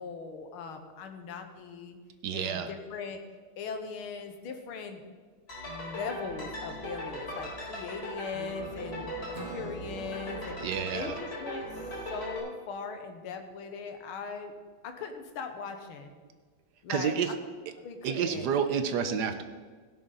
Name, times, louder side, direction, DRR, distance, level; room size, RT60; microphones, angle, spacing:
voice 1, 0.0-2.0 2.3-3.2 3.6-5.0 5.7-10.6 10.9-11.7 12.1-14.5 14.8-16.2 16.8-17.3 17.8-18.5, left 5 dB, 80° left, 6 dB, 2.0 m, -39 dB
voice 2, 2.2-2.7 10.6-11.1 16.9-17.3 18.0-19.4, right 7 dB, 60° right, 9 dB, 1.2 m, -29 dB
sound 1, 5.5-12.4, equal, 30° left, 4.4 m, -39 dB
Acoustic guitar / Strum, 9.3-12.8, right 2 dB, 75° right, 2.9 m, -49 dB
16.5 x 10.5 x 4.0 m, 1.5 s
omnidirectional pair, 2.3 m